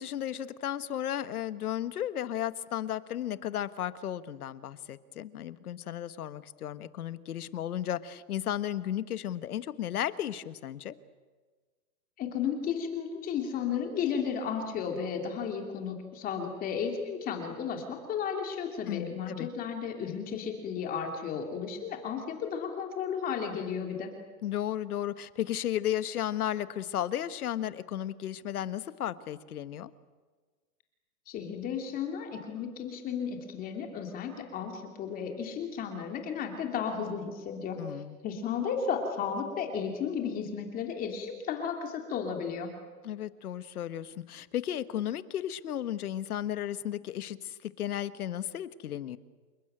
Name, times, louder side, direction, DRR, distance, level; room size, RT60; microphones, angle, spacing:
voice 1, 0.0-10.9 18.9-19.5 24.4-29.9 37.8-38.2 43.0-49.2, left 11 dB, 75° left, 13 dB, 1.5 m, -34 dB
voice 2, 12.2-24.1 31.3-37.8 38.2-42.7, left 7 dB, 20° left, 3 dB, 2.8 m, -34 dB
29.0 x 20.0 x 9.0 m, 1.4 s
hypercardioid pair, 165°, 45 cm